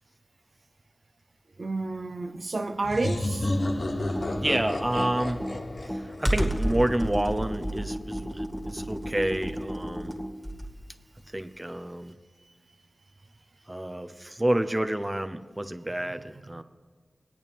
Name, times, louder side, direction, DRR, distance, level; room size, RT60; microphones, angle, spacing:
voice 1, 1.6-3.5 4.9-5.0 16.6-16.7, right 3 dB, 60° right, 0.6 m, -30 dB
sound 1, 2.8-7.4, left 1 dB, 60° left, 1.1 m, -32 dB
Computer keyboard, 4.0-10.9, equal, ahead, 2.2 m, -31 dB
voice 2, 4.4-5.5 5.8-10.2 11.3-12.1 13.7-16.6, right 1 dB, 20° right, 0.7 m, -29 dB
22.5 x 8.8 x 3.6 m
cardioid pair, 50°, 0 cm